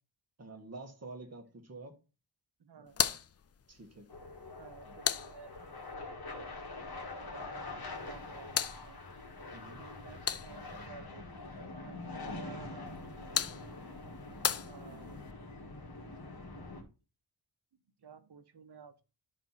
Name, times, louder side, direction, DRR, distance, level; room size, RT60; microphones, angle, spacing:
voice 1, 0.4-2.0 2.7-3.2 3.7-4.1 4.8-5.0 9.5-9.8 14.9-15.2, right 3 dB, 30° right, 1.6 m, -49 dB
voice 2, 2.6-3.1 4.6-6.5 7.3-9.0 9.7-13.8 14.6-15.6 18.0-19.0, right 6 dB, 55° right, 1.2 m, -55 dB
sound 1, 2.9-5.9 7.9-10.9 12.9-15.3, left 8 dB, 35° left, 0.4 m, -38 dB
sound 2, 4.1-16.8, left 2 dB, 50° left, 1.9 m, -45 dB
12.5 x 4.3 x 4.1 m
wide cardioid pair, 135°, 47 cm